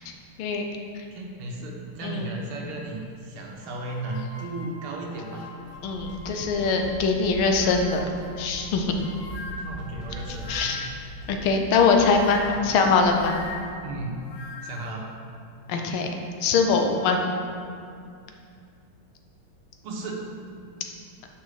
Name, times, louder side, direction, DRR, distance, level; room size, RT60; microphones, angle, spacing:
voice 1, 1.1-5.5 9.6-10.8 12.0-12.6 13.8-14.2 14.6-15.1 19.8-20.3, right 2 dB, 85° right, -1 dB, 1.9 m, -35 dB
sound 1, 3.6-6.9 7.3-11.1 11.9-14.9, left 4 dB, 65° left, 1.1 m, -42 dB
sound 2, 5.7-13.7, right 2 dB, 45° right, 0.8 m, -41 dB
voice 2, 5.8-8.0 8.4-8.9 10.5-10.9 11.3-13.4 15.7-16.1 16.4-17.3, left 4 dB, 80° left, 3 dB, 1.6 m, -22 dB
6.3 x 5.6 x 4.9 m, 2.4 s
omnidirectional pair, 2.3 m